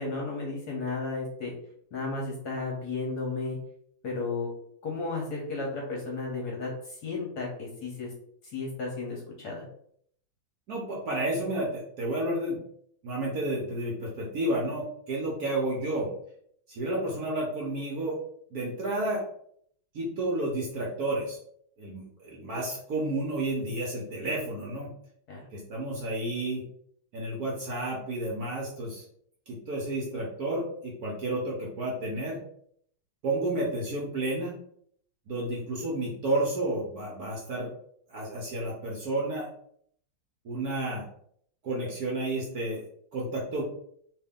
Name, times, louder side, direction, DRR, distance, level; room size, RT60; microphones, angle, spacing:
voice 1, 0.0-1.5 1.9-3.6 4.0-4.5 4.8-8.1 8.5-9.6 25.3-25.4, left 3 dB, 60° left, -2 dB, 1.2 m, -33 dB
voice 2, 10.7-12.6 13.0-16.1 16.7-18.2 18.5-19.2 19.9-21.4 21.8-24.9 25.5-26.6 27.1-29.0 29.5-32.4 33.2-34.5 35.3-37.7 38.1-39.5 40.4-41.0 41.6-42.8 43.1-43.6, right 1 dB, 60° right, -3 dB, 1.1 m, -31 dB
3.2 x 2.6 x 3.5 m, 0.65 s
omnidirectional pair, 2.2 m